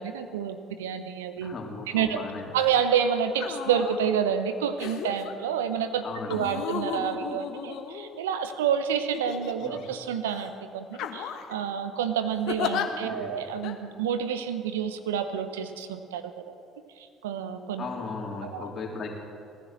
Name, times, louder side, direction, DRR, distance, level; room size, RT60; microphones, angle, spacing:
voice 1, 0.0-1.5 1.9-2.2 2.5-16.3 17.0-17.8 18.4-18.7, right 8 dB, 80° right, 10 dB, 0.8 m, -29 dB
voice 2, 1.4-2.5 6.0-6.5 9.6-9.8 13.0-13.4 17.8-19.1, left 4 dB, 45° left, 0 dB, 3.4 m, -37 dB
sound 1, 2.6-2.8 3.3-4.0 4.8-5.3 6.3-8.4 9.1-9.9 10.3-10.5 10.9-11.5 12.5-12.9 13.6-13.7, left 8 dB, 65° left, 1.3 m, -34 dB
18.0 x 10.5 x 7.6 m, 2.4 s
hypercardioid pair, 55°, 0 cm